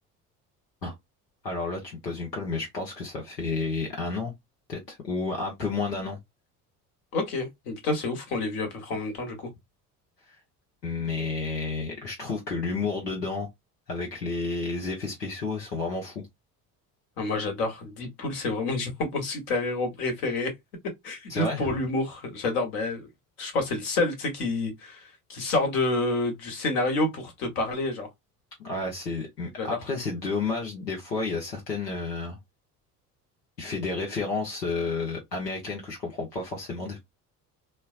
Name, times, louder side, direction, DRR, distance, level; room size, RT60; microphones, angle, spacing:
voice 1, 1.4-4.3 4.7-6.2 10.3-10.4 10.8-13.5 13.9-16.2 21.3-21.7 28.6-32.4 33.6-37.0, left 3 dB, 90° left, 1.0 m, -31 dB
voice 2, 7.1-9.5 17.2-20.5 21.0-23.1 23.4-28.1 29.6-29.8, left 2 dB, 70° left, 1.5 m, -28 dB
4.2 x 2.2 x 2.4 m
figure-of-eight pair, 55°, 47 cm